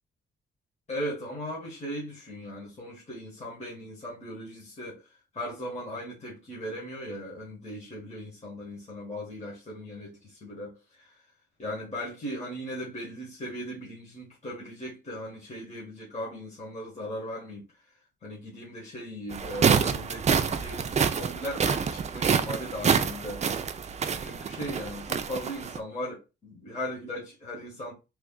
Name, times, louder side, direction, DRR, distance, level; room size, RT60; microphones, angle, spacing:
voice 1, 0.9-5.1 5.3-11.2 11.6-17.7 18.2-23.4 24.0-27.9, equal, 35° left, 1.4 m, -38 dB
sound 1, 19.3-25.8, right 6 dB, 35° right, 0.4 m, -27 dB
3.2 x 2.4 x 3.7 m
cardioid pair, 110°, 20 cm